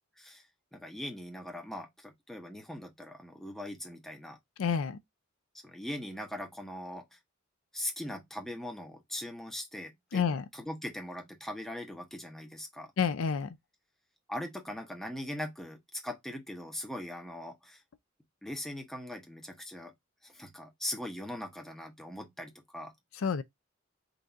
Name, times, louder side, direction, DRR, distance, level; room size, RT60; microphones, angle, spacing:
voice 1, 0.7-4.4 5.6-7.2 7.7-10.2 10.5-12.9 14.3-17.8 18.4-19.9 20.2-22.9, left 1 dB, ahead, 0.8 m, -40 dB
voice 2, 4.6-5.0 10.1-10.4 13.0-13.6 23.2-23.4, left 6 dB, 75° left, 0.5 m, -29 dB
4.0 x 2.5 x 4.4 m
head